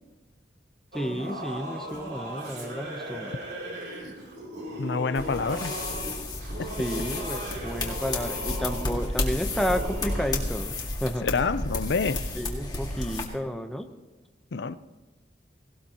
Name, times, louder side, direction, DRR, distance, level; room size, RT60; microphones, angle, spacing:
voice 1, 0.9-3.3 6.8-10.7 11.0-11.3 12.3-13.9, equal, ahead, 5 dB, 0.8 m, -31 dB
Singing / Musical instrument, 0.9-10.3, right 1 dB, 70° right, 3.1 m, -37 dB
voice 2, 4.8-5.7 6.6-6.7 11.2-12.2 14.5-14.8, left 4 dB, 75° left, 15 dB, 0.5 m, -27 dB
sound 1, 5.1-13.2, left 2 dB, 20° left, 1.9 m, -32 dB
18.0 x 18.0 x 2.9 m, 1.2 s
head